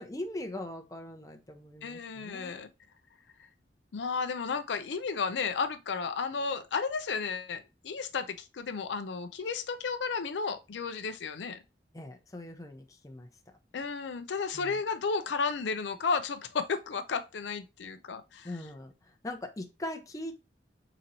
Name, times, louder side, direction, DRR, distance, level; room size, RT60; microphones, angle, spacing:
voice 1, 0.0-2.5 11.9-13.3 14.5-14.8 18.4-20.3, left 1 dB, 20° left, 0.7 m, -41 dB
voice 2, 1.8-2.7 3.9-11.6 13.7-18.5, left 5 dB, 75° left, 0.5 m, -33 dB
3.9 x 3.0 x 4.1 m
head